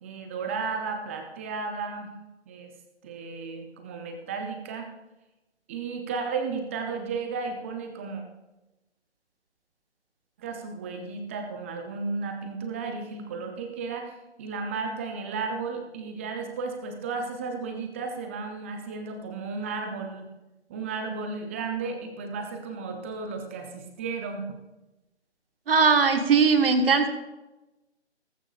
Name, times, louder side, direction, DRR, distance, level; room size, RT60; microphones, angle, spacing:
voice 1, 0.0-2.1 2.5-2.7 3.0-4.9 5.7-8.2 10.4-20.3 20.7-24.5, right 4 dB, 10° right, 4 dB, 0.7 m, -34 dB
voice 2, 25.7-27.1, right 5 dB, 55° right, 5 dB, 1.6 m, -20 dB
17.5 x 15.0 x 2.4 m, 1.0 s
figure-of-eight pair, 150°, 35 cm